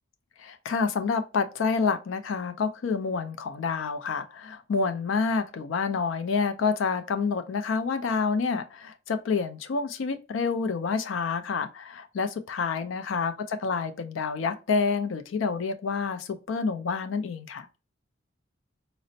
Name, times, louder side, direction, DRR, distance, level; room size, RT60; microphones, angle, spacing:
voice 1, 0.4-17.7, left 5 dB, 85° left, 0.4 m, -28 dB
4.1 x 2.0 x 2.6 m
head